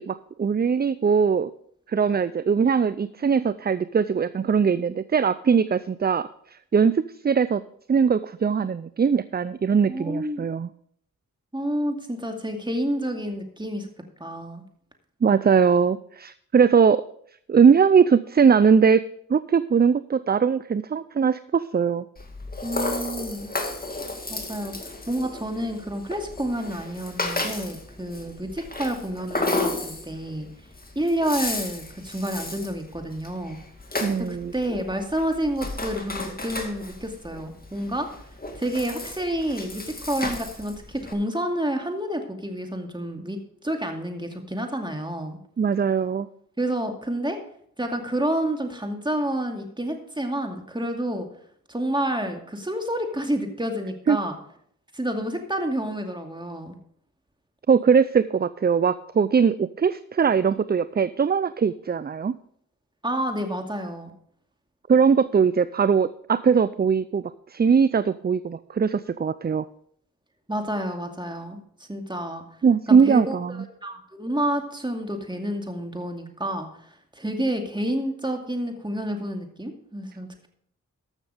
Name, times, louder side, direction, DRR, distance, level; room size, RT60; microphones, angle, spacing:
voice 1, 0.0-1.5 1.9-6.3 6.7-7.6 7.9-10.7 15.2-17.0 17.5-19.0 19.3-22.0 34.0-34.5 45.6-46.3 54.1-54.2 57.7-62.3 64.9-67.2 67.5-69.6 72.6-73.6, right 6 dB, 30° right, 15 dB, 0.4 m, -20 dB
voice 2, 9.9-10.5 11.5-13.9 14.2-14.6 22.6-23.5 24.3-24.8 25.1-30.5 31.0-33.6 34.3-38.1 38.5-45.4 46.6-47.4 47.8-51.3 51.7-54.4 54.9-56.8 63.0-64.1 70.5-71.6 71.9-72.4 72.9-73.4 73.8-76.7 77.2-80.5, right 1 dB, 15° right, 4 dB, 2.4 m, -29 dB
Rattle (instrument), 22.2-41.1, left 2 dB, 30° left, 2.1 m, -33 dB
13.5 x 6.6 x 5.0 m, 0.66 s
cardioid pair, 40°, 32 cm